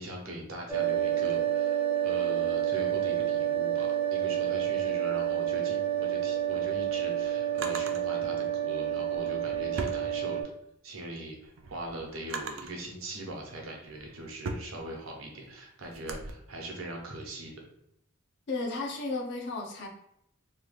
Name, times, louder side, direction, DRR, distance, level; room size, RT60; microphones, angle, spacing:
voice 1, 0.0-10.5 10.8-17.5, right 1 dB, 90° right, 0 dB, 0.9 m, -41 dB
sound 1, 0.7-10.4, right 11 dB, 10° right, 0.4 m, -29 dB
Drawer open or close, 6.4-8.0 9.1-10.7 11.2-12.8 13.5-16.3, right 3 dB, 65° right, 0.4 m, -40 dB
voice 2, 18.5-19.9, left 3 dB, 60° left, 1 dB, 0.5 m, -33 dB
2.9 x 2.3 x 3.2 m, 0.74 s
head